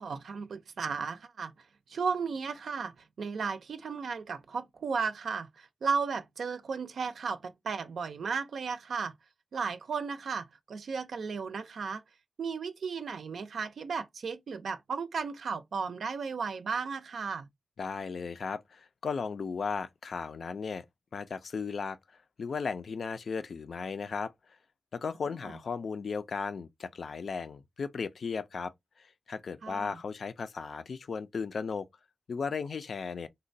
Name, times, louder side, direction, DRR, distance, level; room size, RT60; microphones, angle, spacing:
voice 1, 0.0-1.5 1.9-9.1 9.5-12.0 12.4-17.5 25.4-25.5 29.6-30.0, right 5 dB, 90° right, 0.4 m, -35 dB
voice 2, 17.8-20.8 21.1-24.3 24.9-28.7 29.0-31.9 32.3-33.3, left 5 dB, 70° left, 0.3 m, -36 dB
3.8 x 2.2 x 2.5 m
wide cardioid pair, 100°, 0 cm